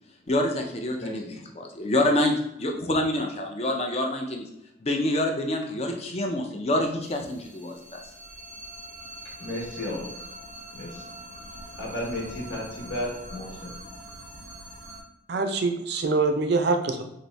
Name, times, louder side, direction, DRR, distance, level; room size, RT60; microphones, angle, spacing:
voice 1, 0.3-1.3 1.6-4.5 4.8-8.0, left 1 dB, 30° left, 3 dB, 0.5 m, -26 dB
voice 2, 1.0-1.5 9.4-10.2 10.7-11.1 11.8-13.7, left 1 dB, 75° left, -2 dB, 1.3 m, -34 dB
sound 1, 7.0-15.0, right 1 dB, 10° left, 1.0 m, -43 dB
voice 3, 15.3-17.0, right 3 dB, 55° right, 6 dB, 0.4 m, -24 dB
4.0 x 2.6 x 3.2 m, 0.84 s
head